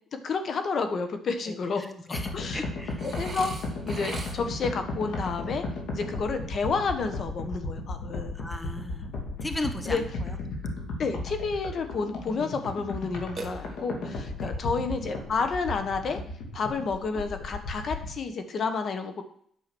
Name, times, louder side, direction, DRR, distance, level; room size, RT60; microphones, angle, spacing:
voice 1, 0.2-2.0 2.3-2.6 3.0-3.5 3.8-5.6 5.9-8.3 9.8-10.0 11.0-16.2 16.5-19.2, left 4 dB, 55° left, 8 dB, 1.4 m, -30 dB
voice 2, 1.5-3.1 8.3-9.1 9.4-10.4 14.4-14.5, left 2 dB, 10° left, 7 dB, 1.2 m, -37 dB
sound 1, 2.1-18.1, left 2 dB, 75° left, 2.5 m, -35 dB
Burping eructation, 3.0-4.7 13.4-14.1, right 3 dB, 25° right, 2.1 m, -40 dB
9.3 x 7.1 x 6.2 m, 0.63 s
cardioid pair, 90°, 0 cm